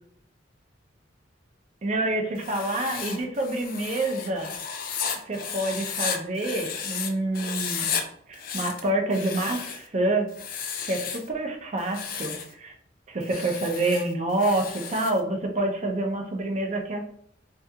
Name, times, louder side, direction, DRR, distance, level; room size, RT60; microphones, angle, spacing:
voice 1, 1.8-4.5 5.3-7.9 8.3-10.3 10.8-12.7 13.1-17.0, right 1 dB, 40° right, 3 dB, 0.5 m, -27 dB
Writing, 2.4-7.1 7.3-8.0 8.3-9.9 10.3-11.3 11.8-12.5 13.2-15.2, left 7 dB, 50° left, 0.4 m, -33 dB
2.3 x 2.3 x 2.6 m, 0.66 s
head